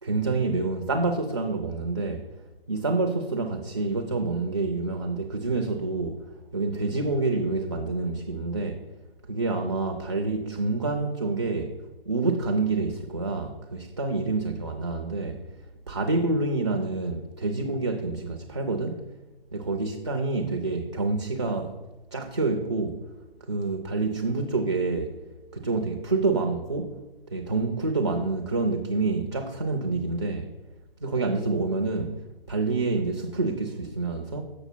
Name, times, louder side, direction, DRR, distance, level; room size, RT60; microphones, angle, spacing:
voice 1, 0.0-2.2 2.7-6.2 6.5-8.8 9.3-11.7 12.1-15.4 15.9-19.0 19.5-21.8 22.1-23.0 23.5-25.1 25.5-27.0 27.3-30.5 31.0-32.2 32.5-34.4, right 3 dB, 30° right, 0.4 m, -27 dB
7.1 x 6.3 x 4.4 m
figure-of-eight pair, 155°, 30 cm